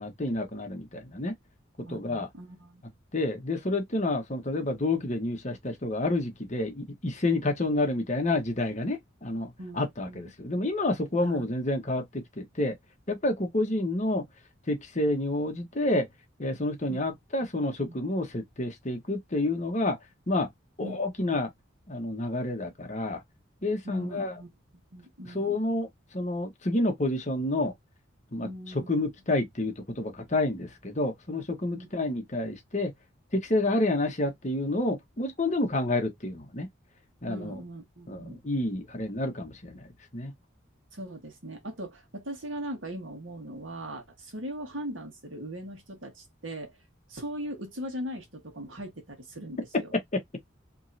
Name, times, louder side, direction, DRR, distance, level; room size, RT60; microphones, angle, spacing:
voice 1, 0.0-1.3 1.9-2.3 3.1-12.7 13.1-14.2 14.7-16.1 16.4-20.0 20.3-20.5 20.8-21.5 21.9-23.2 23.6-24.3 25.3-25.9 26.1-27.7 28.3-28.5 28.7-32.9 33.3-36.7 37.2-37.6 38.1-39.9 40.1-40.3 49.7-49.8 50.1-50.2, left 2 dB, 40° left, 1.2 m, -29 dB
voice 2, 1.8-2.8 9.6-10.3 11.2-11.5 16.9-17.0 17.8-17.9 20.8-21.4 23.8-25.6 28.4-28.9 31.7-31.9 37.3-38.4 40.9-46.8 47.1-49.9, equal, 80° right, 1.6 m, -40 dB
3.6 x 3.1 x 2.8 m
head